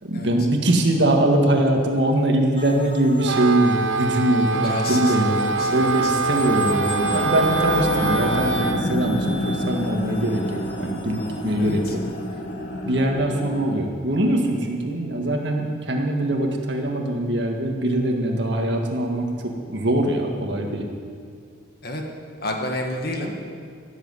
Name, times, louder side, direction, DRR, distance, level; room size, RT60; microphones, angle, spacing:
voice 1, 0.0-5.4 5.7-12.0 12.8-20.8, right 1 dB, 60° right, 2 dB, 1.9 m, -22 dB
sound 1, 2.6-12.3, left 2 dB, 25° left, 1.2 m, -36 dB
Wind instrument woodwind instrument, 3.2-8.8, right 4 dB, 75° right, 0.6 m, -24 dB
voice 2, 4.5-5.1 5.4-6.1 11.6-11.9 21.8-22.0 22.4-23.5, left 1 dB, 50° left, 1 dB, 2.0 m, -30 dB
sound 2, 7.0-13.7, equal, 65° left, 2.1 m, -29 dB
15.5 x 7.8 x 9.7 m, 2.3 s
head